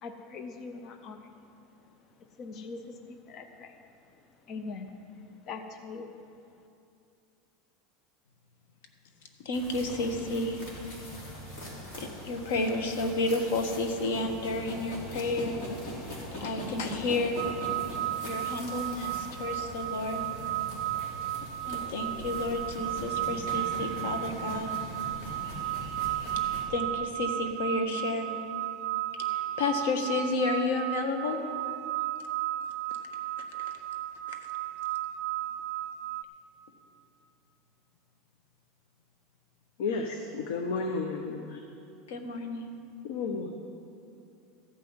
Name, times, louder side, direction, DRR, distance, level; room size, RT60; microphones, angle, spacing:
voice 1, 0.0-1.6 2.2-3.8 4.1-6.1, left 4 dB, 30° left, 6 dB, 0.6 m, -43 dB
voice 2, 9.4-10.6 12.0-15.6 16.4-17.4 18.2-20.2 21.6-24.7 26.7-28.3 29.2-31.4 34.3-34.4 42.1-42.7, left 2 dB, 90° left, 5 dB, 1.4 m, -31 dB
sound 1, 9.5-26.6, equal, 50° left, 3.1 m, -41 dB
sound 2, 17.4-36.2, right 14 dB, 45° right, 0.4 m, -34 dB
voice 3, 39.8-41.6 43.0-43.5, left 4 dB, 70° left, 4 dB, 0.9 m, -32 dB
14.0 x 5.8 x 8.7 m, 2.6 s
supercardioid pair, 170°, 0 cm